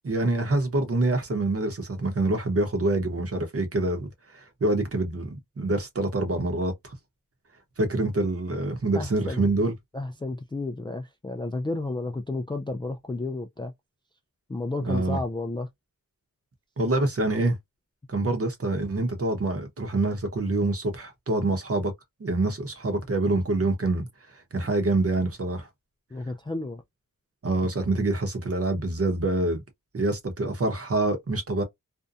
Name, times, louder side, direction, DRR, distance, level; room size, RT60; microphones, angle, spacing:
voice 1, 0.0-6.9 7.8-9.7 14.8-15.2 16.8-17.6 18.1-21.9 22.2-24.1 24.3-25.7 27.4-29.6 29.9-31.6, right 2 dB, 45° right, 0.9 m, -26 dB
voice 2, 8.9-9.5 9.9-13.7 14.5-15.7 26.1-26.8, left 2 dB, 15° left, 0.3 m, -32 dB
2.6 x 2.2 x 2.5 m
wide cardioid pair, 90°, 33 cm